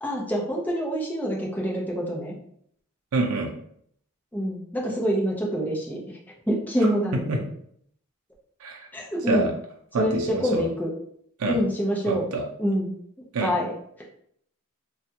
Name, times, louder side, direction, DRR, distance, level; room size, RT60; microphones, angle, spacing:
voice 1, 0.0-2.3 4.3-6.0 6.5-7.4 8.9-9.5 10.0-10.9 11.4-12.3 12.6-12.9 13.4-13.7, equal, 10° left, -3 dB, 0.7 m, -26 dB
voice 2, 3.1-3.5 7.3-7.4 8.6-8.9 9.3-9.5 9.9-10.6 11.4-11.6 12.1-12.4 13.3-13.5, right 3 dB, 90° right, 1 dB, 0.5 m, -26 dB
3.2 x 2.3 x 2.8 m, 0.67 s
head